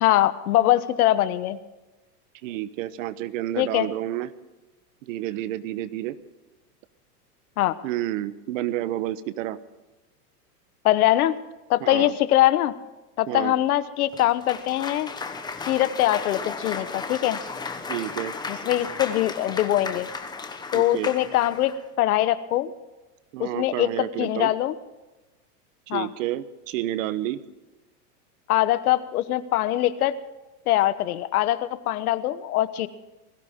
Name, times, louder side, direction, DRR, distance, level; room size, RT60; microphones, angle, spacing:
voice 1, 0.0-1.6 3.6-3.9 7.6-7.7 10.8-11.3 11.7-12.7 13.2-15.1 15.7-17.4 18.5-20.1 20.7-22.7 23.4-24.7 25.9-26.1 28.5-30.2 30.7-32.9, left 14 dB, 65° left, 14 dB, 1.3 m, -22 dB
voice 2, 2.4-4.3 5.0-6.2 7.8-9.6 11.8-12.1 13.3-13.5 17.9-18.3 20.7-21.1 23.3-24.5 25.9-27.4, right 13 dB, 55° right, 14 dB, 1.1 m, -30 dB
Cheering / Applause, 14.1-21.8, left 4 dB, 10° left, 1.1 m, -35 dB
21.0 x 16.5 x 3.7 m, 1.1 s
supercardioid pair, 145°, 47 cm